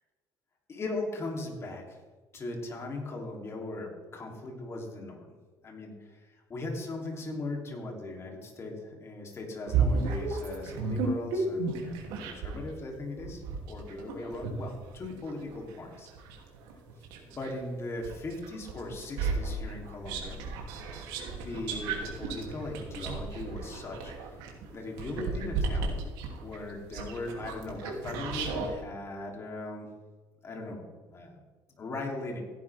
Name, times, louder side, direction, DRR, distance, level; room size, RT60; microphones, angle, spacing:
voice 1, 0.7-2.0 2.3-5.3 5.6-16.1 17.2-20.4 21.3-24.3 24.7-25.9 26.4-29.9 30.4-31.4 31.8-32.4, left 2 dB, 35° left, 0 dB, 3.4 m, -39 dB
sound 1, 9.7-12.7 13.2-17.6 18.0-28.7, right 4 dB, 85° right, 2.9 m, -33 dB
16.5 x 10.5 x 3.6 m, 1.3 s
cardioid pair, 110°, 8 cm